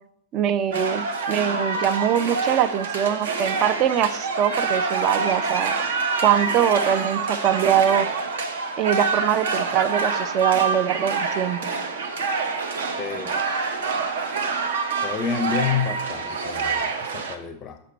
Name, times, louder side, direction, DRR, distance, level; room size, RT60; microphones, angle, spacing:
voice 1, 0.3-5.7 6.2-8.1 8.8-11.6, right 9 dB, 35° right, 13 dB, 0.4 m, -22 dB
sound 1, 0.7-17.3, right 4 dB, 60° right, 0.7 m, -26 dB
voice 2, 13.0-13.4 15.0-17.8, left 7 dB, 30° left, 9 dB, 0.5 m, -29 dB
6.6 x 5.2 x 4.2 m, 0.69 s
figure-of-eight pair, 90°, 0 cm